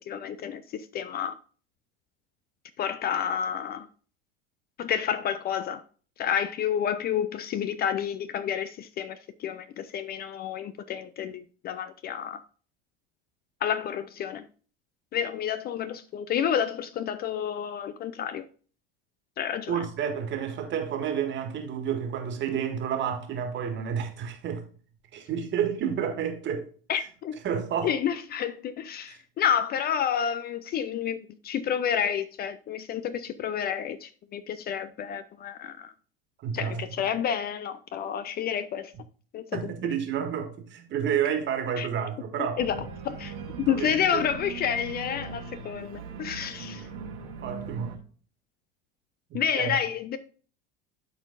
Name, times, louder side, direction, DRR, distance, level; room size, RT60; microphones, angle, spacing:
voice 1, 0.1-1.3 2.8-3.9 4.8-5.8 6.2-12.4 13.6-14.4 15.1-18.4 19.4-19.8 26.9-27.4 27.8-35.9 36.5-38.9 39.3-39.4 41.8-41.9 42.4-43.4 43.7-46.9 49.3-50.2, left 8 dB, 35° left, 0.5 m, -30 dB
voice 2, 19.7-24.6 25.1-26.7 27.4-27.9 29.1-29.2 36.4-36.8 39.5-42.6 43.6-44.2 47.4-48.0 49.3-49.7, right 8 dB, 40° right, 1.8 m, -30 dB
Organ, 42.6-48.0, right 5 dB, 60° right, 1.6 m, -40 dB
12.0 x 4.4 x 2.5 m
hypercardioid pair, 75°, 29 cm